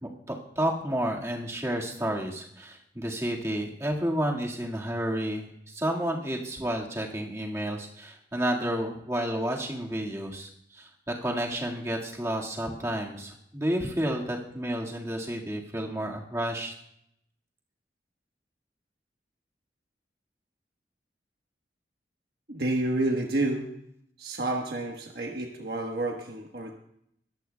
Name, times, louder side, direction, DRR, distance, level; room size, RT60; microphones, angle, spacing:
voice 1, 0.0-16.7, right 1 dB, 15° right, -2 dB, 1.8 m, -31 dB
voice 2, 22.5-23.6 24.2-26.7, right 2 dB, 60° right, 1 dB, 1.3 m, -29 dB
21.0 x 14.0 x 2.3 m, 0.73 s
head